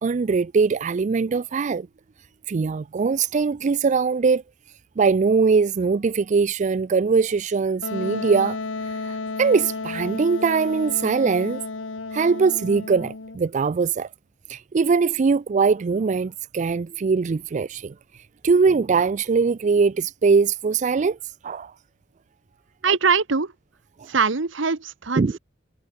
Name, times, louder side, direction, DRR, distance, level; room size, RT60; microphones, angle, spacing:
voice 1, 0.0-1.9 2.5-4.4 5.0-11.6 12.1-14.1 14.5-17.9 18.4-21.2 21.4-21.7 22.9-23.0 24.0-24.1 25.2-25.4, right 5 dB, 40° right, 0.4 m, -21 dB
Wind instrument woodwind instrument, 7.8-13.4, left 3 dB, 80° left, 1.3 m, -32 dB
voice 2, 22.8-23.5 24.1-25.4, right 5 dB, 70° right, 1.2 m, -22 dB
head